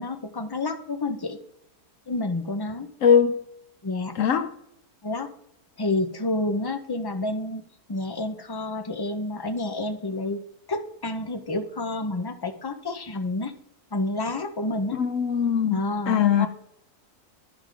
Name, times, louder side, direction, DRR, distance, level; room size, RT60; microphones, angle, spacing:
voice 1, 0.0-1.4 2.1-2.9 3.8-4.1 5.0-5.3 5.8-7.6 7.9-10.4 10.7-13.5 13.9-15.0 15.7-16.5, left 2 dB, 25° left, 0.5 m, -29 dB
voice 2, 3.0-3.4 4.2-4.5 14.9-16.5, left 7 dB, 65° left, 1.0 m, -21 dB
11.5 x 4.8 x 3.7 m
omnidirectional pair, 1.6 m